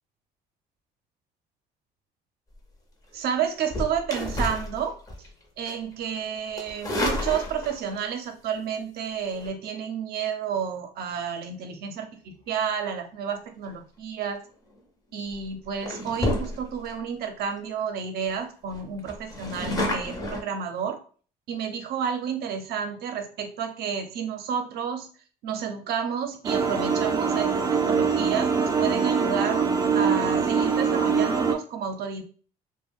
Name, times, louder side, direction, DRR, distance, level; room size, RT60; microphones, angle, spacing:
voice 1, 3.1-5.0 5.6-14.4 15.1-21.0 21.5-25.1 25.4-29.7 29.9-32.2, right 7 dB, 70° right, 6 dB, 0.6 m, -31 dB
sound 1, 3.6-5.3 5.7-5.9 6.5-8.0 9.3-9.5 14.5-14.8 15.3-15.4 15.8-16.9 17.4-17.5 17.8-17.9 18.2-18.3 18.7-20.4, left 1 dB, 20° left, 0.7 m, -30 dB
sound 2, 26.4-31.5, right 5 dB, 20° right, 0.4 m, -23 dB
2.3 x 2.1 x 3.4 m, 0.41 s
cardioid pair, 110°, 17 cm